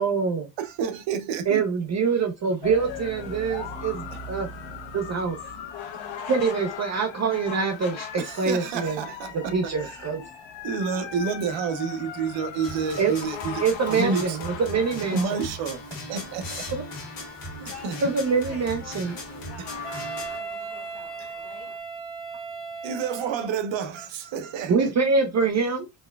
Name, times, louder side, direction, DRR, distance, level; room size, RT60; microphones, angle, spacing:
voice 1, 0.0-0.5 1.5-4.5 4.9-5.4 6.3-9.0 9.3-10.2 13.0-13.1 13.6-15.2 16.7-16.8 18.0-19.1 24.7-26.1, right 5 dB, 35° right, 0.6 m, -25 dB
voice 2, 0.6-1.6 5.9-6.0 8.2-10.0 10.6-14.4 15.1-16.7 17.8-17.9 21.2-21.3 22.8-24.9, right 6 dB, 75° right, 0.9 m, -29 dB
sound 1, 2.6-21.8, left 6 dB, 75° left, 1.0 m, -40 dB
sound 2, 12.6-20.4, left 1 dB, 50° left, 1.8 m, -38 dB
voice 3, 17.7-21.7, left 4 dB, 30° left, 2.0 m, -47 dB
Wind instrument woodwind instrument, 19.8-23.7, right 4 dB, ahead, 1.7 m, -36 dB
4.2 x 3.3 x 2.2 m
cardioid pair, 145°, 45 cm